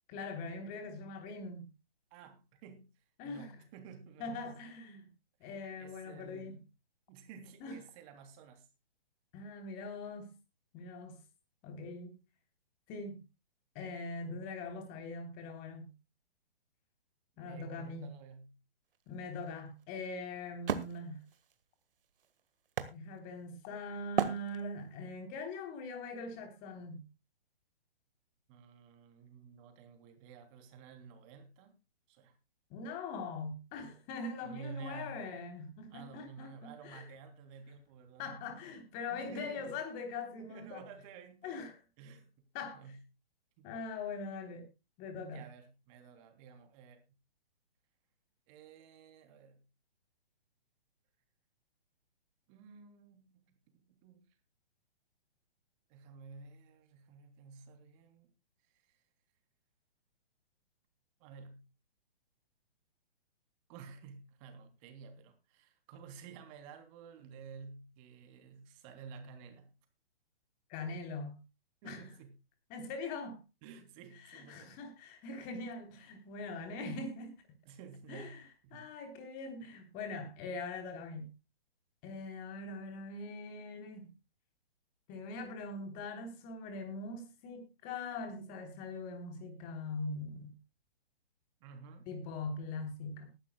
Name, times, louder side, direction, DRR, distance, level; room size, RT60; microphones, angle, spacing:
voice 1, 0.1-1.7 3.2-3.6 4.2-5.1 5.4-6.6 7.6-7.8 9.3-10.3 10.7-11.2 11.6-12.2 12.9-13.2 13.8-15.9 17.4-18.1 19.1-21.2 22.9-27.0 32.7-37.1 38.2-40.8 41.4-41.8 42.5-43.0 43.6-44.7 45.0-45.4 70.7-71.4 71.8-72.0 72.7-73.4 74.2-77.3 78.1-81.3 82.0-84.1 85.1-90.5 92.1-93.3, left 3 dB, 30° left, 3.6 m, -42 dB
voice 2, 2.1-2.9 3.2-4.5 5.4-6.6 7.1-8.7 17.4-18.5 28.5-31.8 32.1-32.3 34.4-35.3 35.9-38.4 39.1-39.7 40.3-42.4 42.7-43.0 43.6-43.7 45.2-47.0 48.5-49.6 52.5-53.5 53.8-54.3 55.9-58.3 61.2-61.6 63.7-69.7 71.8-72.3 73.6-74.8 77.6-78.9 91.6-92.1, right 5 dB, 30° right, 3.3 m, -52 dB
Wood, 18.9-23.6 24.1-25.0, right 7 dB, 60° right, 1.7 m, -38 dB
20.5 x 11.5 x 2.3 m
figure-of-eight pair, 130°, 31 cm